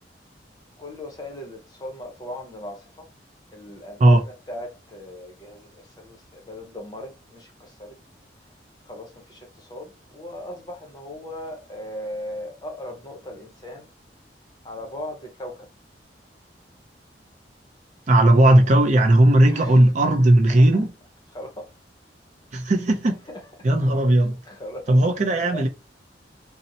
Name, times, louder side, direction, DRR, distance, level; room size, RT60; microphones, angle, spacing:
voice 1, 0.8-3.1 3.5-8.0 8.8-13.9 14.6-15.7 18.3-18.6 19.5-19.8 21.3-21.7 23.3-23.7 24.4-25.3 25.5-25.7, left 1 dB, 25° left, 0.7 m, -38 dB
voice 2, 18.1-20.9 22.5-23.2 23.6-24.4 24.9-25.7, right 1 dB, 40° right, 0.5 m, -16 dB
2.8 x 2.0 x 2.6 m
head